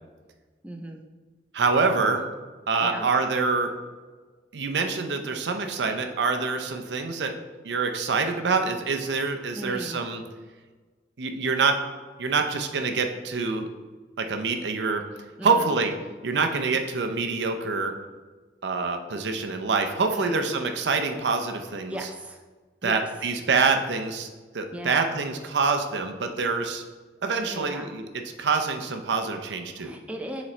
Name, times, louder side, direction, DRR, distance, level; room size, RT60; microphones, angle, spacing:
voice 1, 0.6-1.0 2.8-3.1 9.5-10.0 15.4-15.7 20.1-20.5 21.9-22.4 22.8-23.1 24.7-25.2 27.5-27.9 29.8-30.4, right 1 dB, 5° right, 1 dB, 0.4 m, -37 dB
voice 2, 1.5-2.2 2.7-3.7 4.5-7.3 7.6-10.2 11.2-11.8 12.2-13.7 14.2-15.0 15.4-15.9 16.2-17.9 18.6-22.0 22.8-24.3 24.5-26.8 27.2-28.1 28.4-29.9, right 4 dB, 80° right, 5 dB, 0.6 m, -26 dB
7.3 x 4.1 x 3.2 m, 1.3 s
head